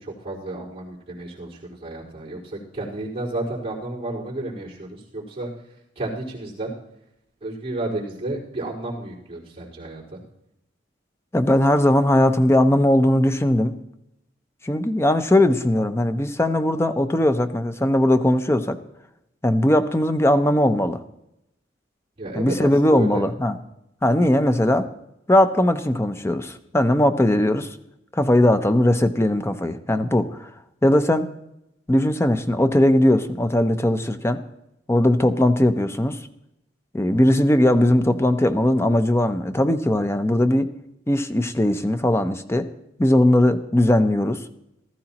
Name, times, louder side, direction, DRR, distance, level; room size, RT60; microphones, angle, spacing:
voice 1, 0.0-5.5 6.0-6.7 7.4-10.2 22.2-23.2, right 2 dB, 35° right, -6 dB, 4.5 m, -32 dB
voice 2, 11.3-13.7 14.6-18.8 19.4-21.0 22.3-23.6 24.0-24.9 25.3-27.7 28.1-30.4 30.8-31.3 31.9-34.4 34.9-36.2 36.9-40.7 41.1-42.7 43.0-44.4, left 1 dB, 15° left, 8 dB, 0.6 m, -19 dB
17.0 x 14.0 x 3.0 m, 0.83 s
head